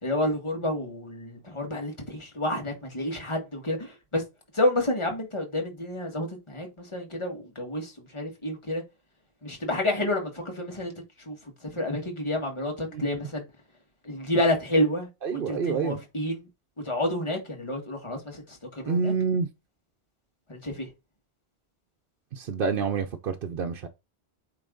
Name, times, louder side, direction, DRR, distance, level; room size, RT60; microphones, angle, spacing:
voice 1, 0.0-4.2 4.5-8.8 9.4-10.9 11.3-11.4 11.7-13.4 14.0-16.5 16.8-19.1 20.5-20.9, left 1 dB, 30° left, 1.7 m, -29 dB
voice 2, 15.2-16.0 18.9-19.5 22.3-23.9, right 5 dB, 65° right, 0.8 m, -27 dB
8.7 x 3.2 x 3.8 m
omnidirectional pair, 1.1 m